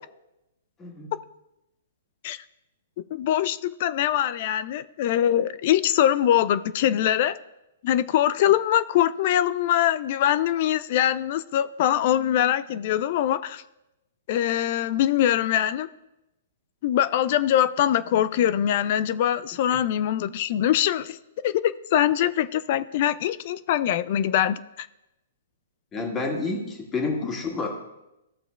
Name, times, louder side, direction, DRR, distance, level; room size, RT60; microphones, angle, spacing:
voice 1, 3.1-7.4 7.8-13.6 14.3-15.9 16.8-21.2 21.4-24.9, left 11 dB, 45° left, 18 dB, 0.3 m, -23 dB
voice 2, 25.9-27.7, left 3 dB, 20° left, 1 dB, 1.7 m, -29 dB
14.5 x 6.8 x 2.3 m, 0.91 s
figure-of-eight pair, 115°, 0 cm